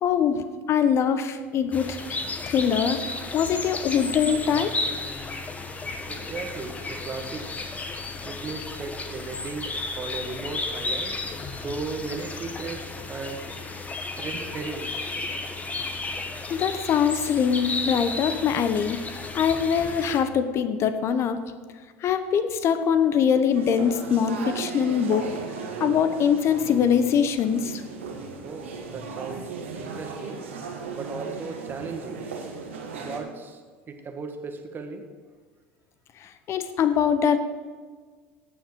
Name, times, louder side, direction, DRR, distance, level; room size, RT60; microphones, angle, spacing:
voice 1, 0.0-2.2 2.5-3.0 3.3-4.7 16.5-19.0 19.3-21.4 22.0-25.3 25.8-27.8 36.2-37.4, left 7 dB, 45° left, 10 dB, 0.9 m, -23 dB
sound 1, 1.7-20.2, left 3 dB, 25° left, 1.4 m, -33 dB
voice 2, 6.1-7.5 8.2-9.7 10.0-11.2 11.5-13.5 14.2-15.1 28.4-30.5 30.9-32.3 33.0-33.6 33.9-35.1, right 4 dB, 30° right, 4 dB, 1.7 m, -36 dB
sound 2, 23.5-33.2, right 5 dB, 80° right, 1.7 m, -36 dB
17.5 x 6.2 x 4.8 m, 1.6 s
hypercardioid pair, 75°, 7 cm